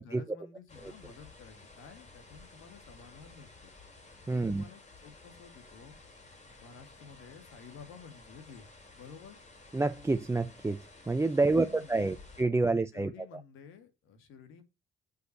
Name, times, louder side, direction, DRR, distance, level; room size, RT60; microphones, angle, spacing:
voice 1, 0.0-3.7 4.3-5.9 6.6-8.7 8.9-9.4 11.4-12.3 12.6-14.6, left 6 dB, 85° left, 2.0 m, -52 dB
sound 1, 0.7-12.4, left 3 dB, 35° left, 3.1 m, -54 dB
voice 2, 4.3-4.6 9.7-13.1, right 3 dB, 15° right, 0.6 m, -28 dB
6.4 x 5.5 x 6.6 m
cardioid pair, 90°, 20 cm